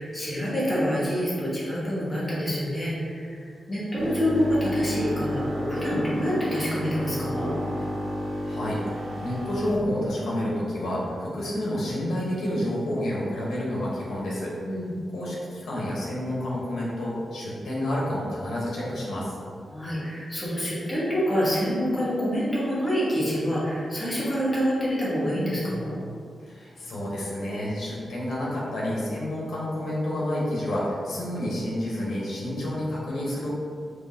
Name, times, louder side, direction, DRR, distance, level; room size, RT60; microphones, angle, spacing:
voice 1, 0.0-3.3 3.7-7.5 14.6-14.9 19.7-25.9, equal, 10° left, -9 dB, 1.2 m, -27 dB
sound 1, 4.0-9.7, equal, 90° right, 1.1 m, -31 dB
voice 2, 8.4-14.5 15.1-19.3 26.4-33.5, left 1 dB, 85° left, -5 dB, 1.2 m, -29 dB
5.3 x 3.0 x 2.9 m, 2.3 s
wide cardioid pair, 170°, 0 cm